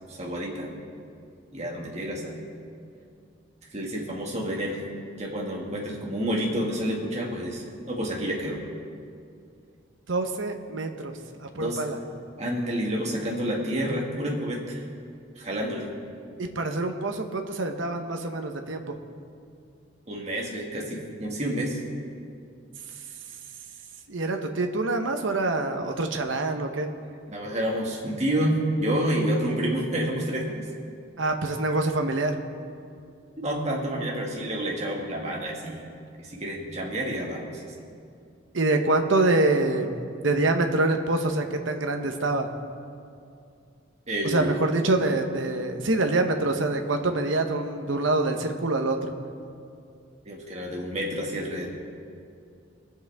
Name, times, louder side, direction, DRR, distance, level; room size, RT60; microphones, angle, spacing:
voice 1, 0.1-0.7 1.5-2.4 3.7-4.8 5.2-8.6 11.5-11.9 12.4-14.9 15.4-15.9 20.1-21.8 27.3-30.7 33.4-35.9 36.2-37.4 44.1-44.5 50.3-51.7, right 1 dB, 35° right, -2 dB, 1.9 m, -29 dB
voice 2, 10.1-12.0 16.4-19.0 24.1-26.9 31.2-32.4 38.5-39.9 40.2-42.5 44.2-49.1, right 2 dB, 70° right, 5 dB, 1.0 m, -25 dB
22.0 x 8.0 x 3.5 m, 2.4 s
head